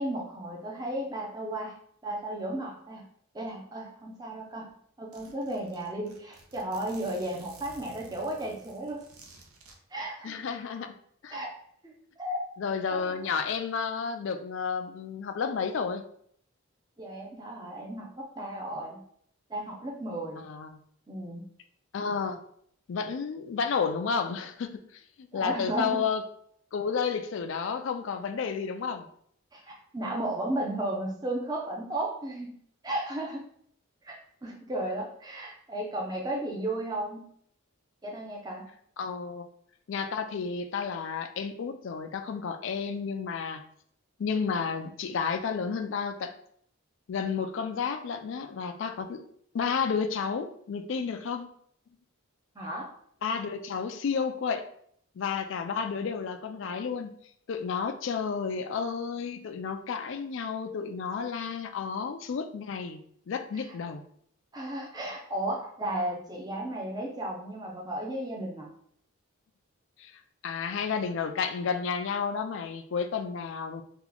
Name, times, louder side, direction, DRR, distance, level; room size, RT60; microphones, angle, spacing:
voice 1, 0.0-1.8 2.0-3.1 3.3-4.7 5.0-9.1 9.9-10.4 11.3-11.6 11.8-12.4 12.9-13.2 17.0-19.0 19.5-20.5 21.1-21.5 25.3-26.0 29.5-32.6 32.8-33.5 34.0-37.3 38.0-38.7 52.5-52.9 64.5-68.7, right 1 dB, 20° right, -1 dB, 0.5 m, -34 dB
Zipper (clothing), 4.3-4.4 4.7-4.8 5.1-9.8, right 3 dB, 75° right, 0.6 m, -53 dB
voice 2, 10.2-10.9 11.2-11.4 12.6-16.0 20.4-20.8 21.9-22.4 22.9-26.2 26.7-29.1 39.0-39.5 39.9-43.6 44.2-46.3 47.1-49.2 49.5-51.5 53.2-54.7 55.2-57.2 57.5-63.0 63.3-64.0 70.0-73.8, left 6 dB, 55° left, 8 dB, 0.3 m, -31 dB
2.9 x 2.3 x 3.9 m, 0.65 s
head